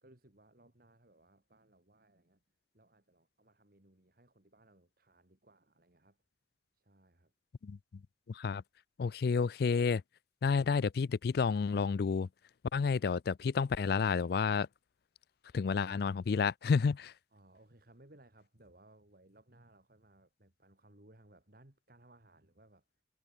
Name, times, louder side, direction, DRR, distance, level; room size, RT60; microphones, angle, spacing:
voice 1, 0.0-2.4 2.7-6.2 6.7-7.3 17.3-22.8, right 1 dB, 50° right, 2.3 m, -63 dB
voice 2, 8.3-8.6 9.0-10.0 10.4-12.3 12.7-14.7 15.5-17.1, left 5 dB, 55° left, 0.4 m, -30 dB
head